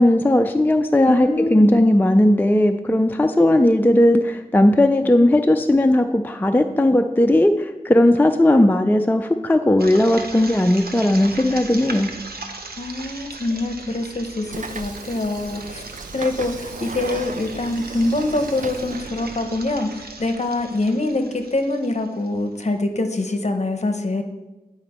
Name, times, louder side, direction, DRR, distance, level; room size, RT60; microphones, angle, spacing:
voice 1, 0.0-12.1, left 1 dB, 10° left, 6 dB, 0.4 m, -17 dB
voice 2, 1.0-1.9 12.8-15.8 16.1-24.2, left 2 dB, 45° left, 6 dB, 0.8 m, -24 dB
sound 1, 9.8-22.6, right 3 dB, 85° right, 0.8 m, -38 dB
Train / Sliding door, 14.4-19.5, right 4 dB, 55° right, 0.4 m, -36 dB
9.7 x 5.0 x 4.3 m, 1.1 s
wide cardioid pair, 70°, 16 cm